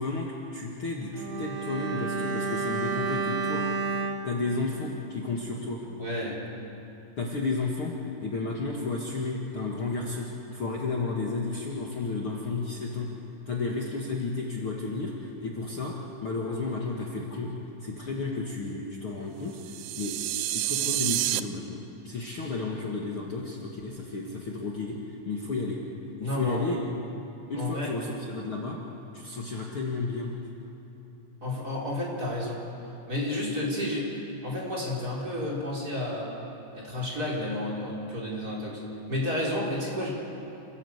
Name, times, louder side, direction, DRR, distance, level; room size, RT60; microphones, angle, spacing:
voice 1, 0.0-3.7 4.2-5.8 7.2-7.9 8.2-13.1 13.5-15.9 16.2-17.5 17.8-20.1 20.5-25.0 25.3-25.8 26.2-26.9 27.5-28.8 29.1-30.3, left 3 dB, 45° left, -2 dB, 2.2 m, -32 dB
Bowed string instrument, 1.1-5.6 5.8-6.0, right 4 dB, 55° right, 2.1 m, -32 dB
voice 2, 6.0-6.4 26.2-26.6 27.5-27.9 31.4-32.6 33.1-34.1 34.4-36.3 36.7-38.8 39.1-40.1, left 1 dB, 25° right, -3 dB, 4.4 m, -31 dB
sound 1, 19.6-21.4, right 15 dB, 80° right, 2.3 m, -29 dB
28.0 x 16.5 x 8.0 m, 2.8 s
omnidirectional pair, 3.9 m